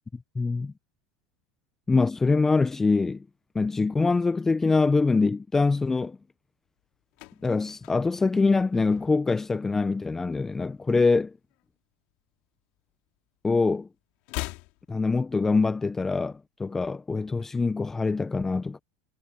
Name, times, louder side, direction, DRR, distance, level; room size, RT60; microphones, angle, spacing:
voice 1, 0.3-0.7 1.9-3.2 3.5-6.2 7.4-11.3 13.4-13.9 14.9-18.8, left 3 dB, 15° left, 1.0 m, -24 dB
sound 1, 6.8-9.5 9.7-10.0 10.3-11.8 12.1-13.4 13.7-15.8 16.0-16.1, left 26 dB, 60° left, 3.8 m, -42 dB
hypercardioid pair, 90°, 2 cm